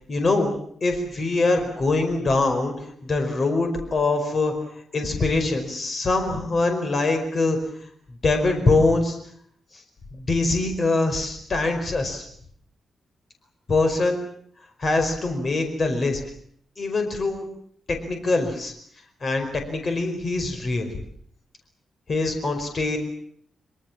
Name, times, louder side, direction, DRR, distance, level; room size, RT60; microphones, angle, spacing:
voice 1, 0.1-0.5 0.8-2.7 3.0-4.5 4.9-7.6 8.2-9.2 10.1-12.2 13.7-14.2 14.8-16.2 16.8-17.4 17.9-18.7 19.2-20.9 22.1-23.0, left 3 dB, 35° left, 5 dB, 4.9 m, -23 dB
25.0 x 24.5 x 7.4 m, 0.63 s
wide cardioid pair, 150°, 0 cm